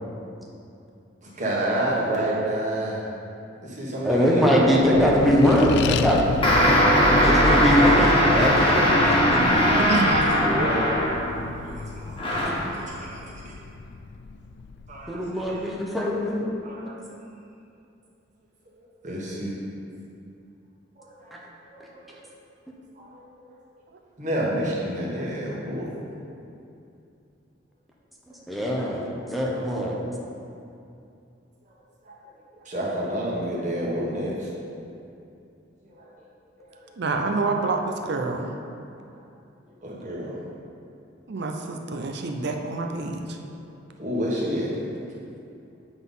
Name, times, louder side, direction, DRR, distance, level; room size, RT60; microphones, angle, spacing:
voice 1, 1.2-3.1 3.6-5.8 8.2-8.6 10.5-10.9 11.6-12.2 12.7-13.2 14.9-15.2 15.5-15.6 16.6-16.9 18.8-19.5 21.0-21.3 21.7-21.8 23.0-23.5 24.2-25.9 28.8-29.0 29.5-29.6 32.6-34.5 35.9-36.1 36.6-36.7 39.8-40.4 44.0-44.7, right 1 dB, 40° right, -5 dB, 1.5 m, -29 dB
voice 2, 4.0-6.2 7.2-9.7 12.6-12.7 15.1-16.4 21.3-21.4 28.5-30.0, equal, ahead, -4 dB, 0.8 m, -22 dB
Accelerating revving vroom, 4.7-15.7, left 4 dB, 60° left, 0.3 m, -32 dB
sound 1, 6.4-11.5 12.2-12.7, equal, 30° left, 1.3 m, -20 dB
voice 3, 9.9-10.2 37.0-38.5 41.3-43.4, right 3 dB, 60° right, 4 dB, 0.6 m, -27 dB
8.0 x 4.0 x 5.4 m, 2.6 s
head